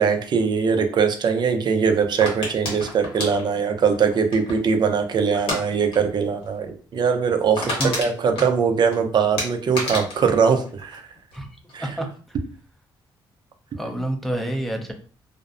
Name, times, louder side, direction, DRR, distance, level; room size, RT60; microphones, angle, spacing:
voice 1, 0.0-11.0 11.7-12.0, right 6 dB, 50° right, 6 dB, 0.5 m, -21 dB
sound 1, 2.2-4.7 5.3-5.6 5.9-6.2 6.4-6.5 6.9-7.0 7.3-9.0 9.4-11.4 11.7-12.1, left 1 dB, 70° left, 1.2 m, -30 dB
voice 2, 7.8-8.4 11.3-11.5 11.8-12.1 13.8-14.9, right 1 dB, ahead, 3 dB, 0.5 m, -28 dB
2.5 x 2.0 x 2.5 m, 0.42 s
cardioid pair, 80°, 10 cm